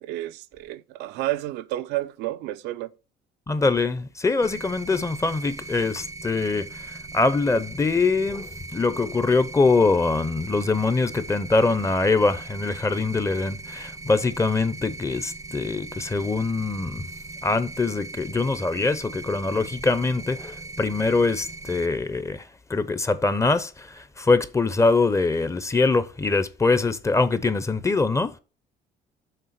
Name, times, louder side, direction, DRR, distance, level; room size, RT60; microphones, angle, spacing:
voice 1, 0.0-2.9, right 15 dB, 90° right, 0.6 m, -31 dB
voice 2, 3.5-17.1 17.4-28.4, left 3 dB, 15° left, 0.6 m, -23 dB
sound 1, 4.4-21.9, right 3 dB, 20° right, 0.4 m, -39 dB
6.7 x 3.5 x 5.8 m
cardioid pair, 110°, 17 cm